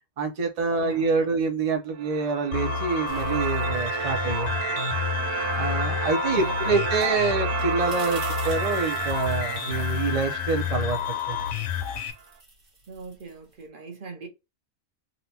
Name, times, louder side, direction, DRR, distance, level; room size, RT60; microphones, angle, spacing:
voice 1, 0.2-4.6 5.6-11.4, right 4 dB, 65° right, 0.4 m, -26 dB
voice 2, 0.8-1.4 6.2-6.9 12.9-14.3, right 4 dB, 45° right, 0.8 m, -40 dB
sound 1, 1.9-12.0, right 7 dB, 80° right, 1.0 m, -32 dB
sound 2, 2.5-12.1, left 8 dB, 65° left, 0.9 m, -30 dB
sound 3, 3.1-4.6 5.0-13.7, right 2 dB, 25° right, 1.3 m, -48 dB
3.9 x 2.1 x 2.8 m
omnidirectional pair, 1.4 m